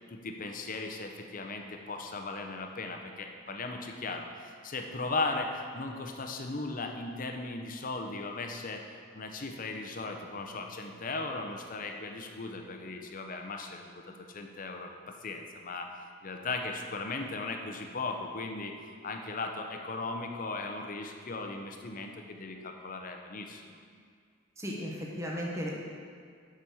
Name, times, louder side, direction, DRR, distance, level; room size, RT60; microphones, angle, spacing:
voice 1, 0.1-8.9 9.1-14.9 15.2-15.9 16.2-18.7 19.0-23.8, left 3 dB, 40° left, 4 dB, 0.7 m, -37 dB
voice 2, 24.6-25.8, equal, 15° right, -3 dB, 1.0 m, -35 dB
7.0 x 5.1 x 6.3 m, 2.1 s
head